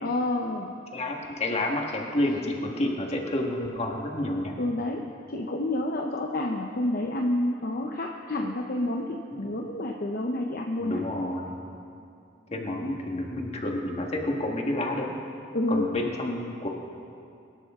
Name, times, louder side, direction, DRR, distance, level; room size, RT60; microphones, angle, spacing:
voice 1, 0.0-0.7 4.6-5.0 5.3-11.0 15.5-15.9, left 1 dB, 50° left, 1 dB, 0.8 m, -29 dB
voice 2, 0.9-4.5 9.3-9.6 10.8-11.5 12.5-15.1 15.7-16.7, left 1 dB, 35° left, 0 dB, 1.7 m, -29 dB
23.5 x 12.0 x 3.7 m, 2.5 s
head